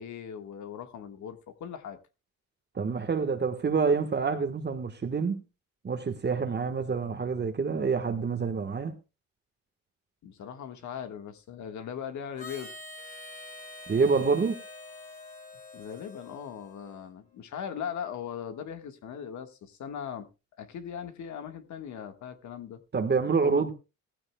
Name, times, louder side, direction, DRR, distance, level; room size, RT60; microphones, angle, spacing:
voice 1, 0.0-2.0 10.2-12.7 15.7-20.3 20.6-22.8 23.4-23.7, left 8 dB, 70° left, 1.6 m, -39 dB
voice 2, 2.7-5.4 5.8-9.0 13.9-14.6 22.9-23.7, right 5 dB, 35° right, 1.3 m, -27 dB
Harmonica, 12.4-17.1, left 2 dB, 25° left, 4.8 m, -46 dB
16.0 x 14.5 x 2.2 m
cardioid pair, 90°, 30 cm